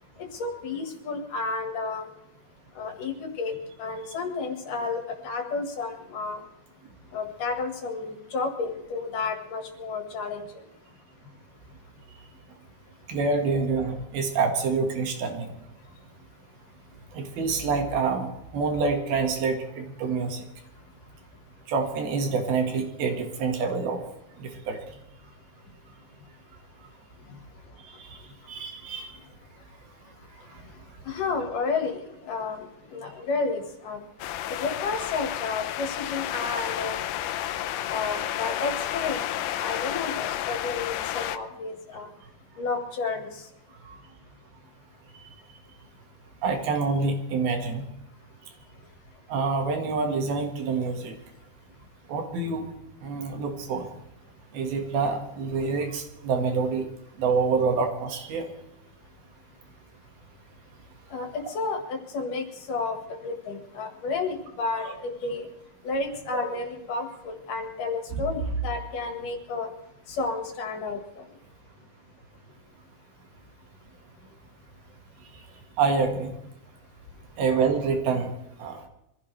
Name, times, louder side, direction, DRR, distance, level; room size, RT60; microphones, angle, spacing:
voice 1, 0.3-2.1 2.8-6.4 7.1-10.6 27.3-27.4 31.0-34.0 34.5-37.0 37.9-39.2 39.6-42.1 42.6-43.4 61.1-65.5 65.8-69.7 70.1-71.0, left 4 dB, 65° left, 4 dB, 3.2 m, -31 dB
voice 2, 13.1-15.5 17.1-20.5 21.7-24.0 24.4-24.8 27.8-28.1 28.5-29.1 43.9-44.0 46.4-47.9 49.3-51.1 52.1-52.7 53.0-53.9 54.5-56.9 57.2-58.5 64.8-64.9 68.1-68.2 75.8-76.3 77.4-78.3 78.6-78.8, right 4 dB, 85° right, 4 dB, 3.7 m, -27 dB
sound 1, 34.2-41.4, left 12 dB, 85° left, 2.5 m, -31 dB
24.5 x 16.0 x 3.3 m, 0.85 s
omnidirectional pair, 4.2 m